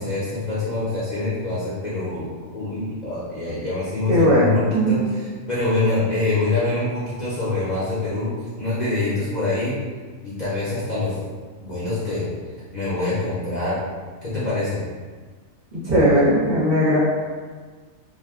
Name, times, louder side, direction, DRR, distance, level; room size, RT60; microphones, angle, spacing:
voice 1, 0.0-9.7 10.2-11.2 11.6-12.3 12.7-13.8 14.2-14.8, left 2 dB, 40° left, -11 dB, 0.8 m, -25 dB
voice 2, 4.1-5.0 15.8-17.0, equal, 50° right, -10 dB, 1.3 m, -18 dB
2.7 x 2.2 x 3.5 m, 1.5 s
omnidirectional pair, 1.3 m